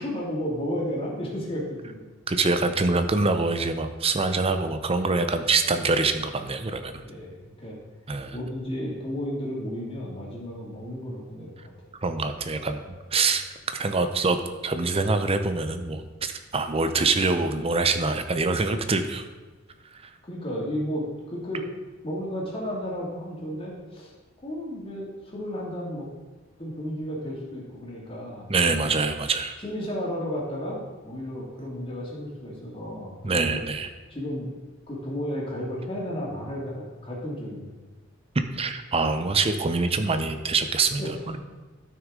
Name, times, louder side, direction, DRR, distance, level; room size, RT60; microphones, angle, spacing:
voice 1, 0.0-2.1 7.0-7.8 8.3-11.5 20.2-21.6 22.0-24.1 24.4-26.1 26.6-28.8 29.6-33.6 34.1-34.5 34.9-37.7 41.0-41.1, equal, 25° left, -4 dB, 2.4 m, -33 dB
voice 2, 2.3-7.0 8.1-8.4 12.0-12.8 13.1-13.4 13.7-14.4 14.6-19.2 28.5-29.5 33.2-33.9 38.5-41.0, right 3 dB, 30° right, 8 dB, 0.6 m, -25 dB
13.0 x 6.2 x 3.8 m, 1.2 s
head